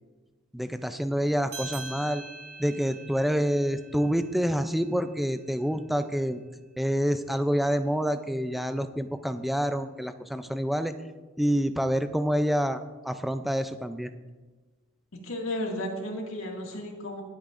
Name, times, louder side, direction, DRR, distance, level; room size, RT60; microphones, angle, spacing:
voice 1, 0.5-2.2 2.6-6.4 6.8-10.9 11.4-14.1, equal, ahead, 9 dB, 0.4 m, -27 dB
sound 1, 1.5-6.4, right 3 dB, 50° right, 3.3 m, -45 dB
voice 2, 15.2-17.2, left 1 dB, 80° left, 0 dB, 2.2 m, -33 dB
24.0 x 8.3 x 2.6 m, 1.3 s
head